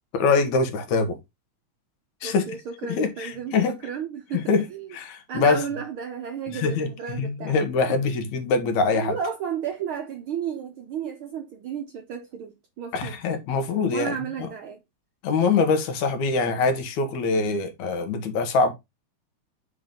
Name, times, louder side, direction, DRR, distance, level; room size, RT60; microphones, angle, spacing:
voice 1, 0.1-1.2 2.2-2.4 2.9-3.8 4.3-4.7 4.9-5.6 6.5-6.9 7.2-9.1 12.9-14.2 15.2-18.7, left 4 dB, 75° left, 2.4 m, -23 dB
voice 2, 2.2-3.6 3.8-4.4 4.7-4.9 5.3-7.5 7.9-8.0 8.9-13.2 13.9-14.8, right 7 dB, 85° right, 1.1 m, -33 dB
5.6 x 3.7 x 5.0 m
omnidirectional pair, 3.5 m